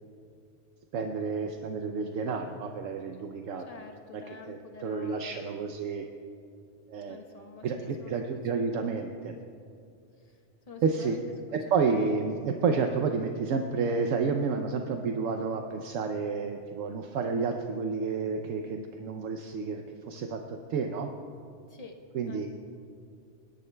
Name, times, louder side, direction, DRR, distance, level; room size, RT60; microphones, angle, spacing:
voice 1, 0.9-3.7 4.1-6.0 6.9-7.2 7.6-9.3 10.8-11.2 11.7-21.1 22.1-22.5, right 5 dB, 80° right, 4 dB, 1.0 m, -30 dB
voice 2, 3.7-5.4 7.1-8.2 8.6-8.9 10.2-10.4 10.7-11.2 11.8-12.0 21.7-22.0 22.3-22.5, left 5 dB, 35° left, 3 dB, 1.0 m, -47 dB
30.0 x 10.5 x 2.2 m, 2.4 s
omnidirectional pair, 1.3 m